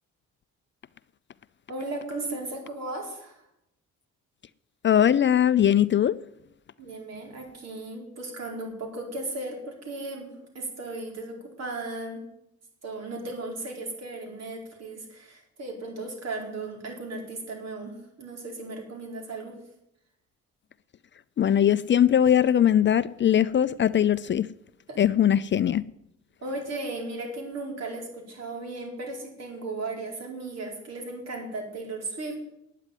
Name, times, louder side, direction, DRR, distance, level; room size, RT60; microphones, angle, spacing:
voice 1, 1.7-3.4 6.8-12.2 12.8-19.6 24.9-25.1 26.4-32.4, right 2 dB, 60° right, 4.7 m, -36 dB
voice 2, 4.8-6.1 21.4-24.5 25.0-25.8, left 10 dB, 40° left, 0.4 m, -20 dB
9.6 x 9.1 x 9.2 m
cardioid pair, 90°, 30 cm